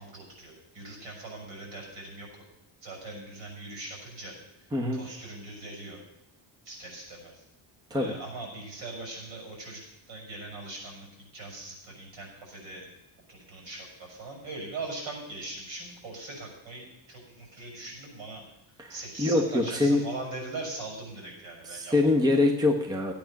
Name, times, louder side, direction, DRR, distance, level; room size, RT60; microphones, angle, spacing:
voice 1, 0.0-2.3 2.8-4.3 4.9-6.0 6.6-7.4 7.9-9.8 10.1-11.1 11.3-12.9 13.3-18.4 18.9-22.1, right 2 dB, 70° right, 0 dB, 6.2 m, -41 dB
voice 2, 4.7-5.0 7.9-8.1 18.8-20.0 21.6-23.1, left 2 dB, 10° right, 3 dB, 1.0 m, -24 dB
15.5 x 8.8 x 5.9 m, 0.88 s
cardioid pair, 175°, 47 cm